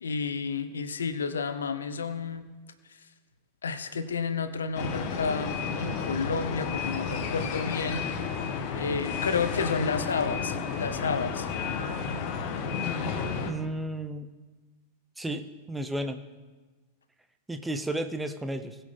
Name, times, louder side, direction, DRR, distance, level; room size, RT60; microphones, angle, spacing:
voice 1, 0.0-2.4 3.6-8.0 8.7-11.5, left 5 dB, 70° left, 11 dB, 0.9 m, -31 dB
sound 1, 4.7-13.5, left 5 dB, 45° left, 1.3 m, -32 dB
voice 2, 13.4-14.3 15.2-16.2 17.5-18.8, right 1 dB, 5° right, 8 dB, 0.8 m, -33 dB
21.0 x 7.1 x 3.7 m, 1.3 s
figure-of-eight pair, 90°, 0 cm